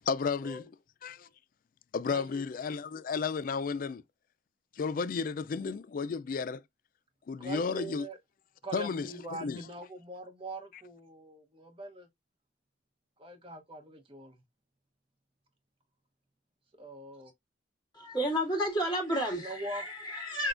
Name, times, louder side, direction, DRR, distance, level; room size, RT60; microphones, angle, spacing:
voice 1, 0.1-0.6 1.0-1.3 1.9-4.0 4.8-6.6 7.3-8.1 8.7-9.1 9.4-9.6, left 5 dB, 45° left, 0.3 m, -33 dB
voice 2, 2.1-2.4 7.4-8.2 8.6-12.1 13.2-14.4 16.7-17.3 19.4-19.8, right 1 dB, 30° right, 0.9 m, -42 dB
voice 3, 17.9-20.5, equal, 25° left, 1.8 m, -31 dB
6.2 x 2.2 x 2.4 m
head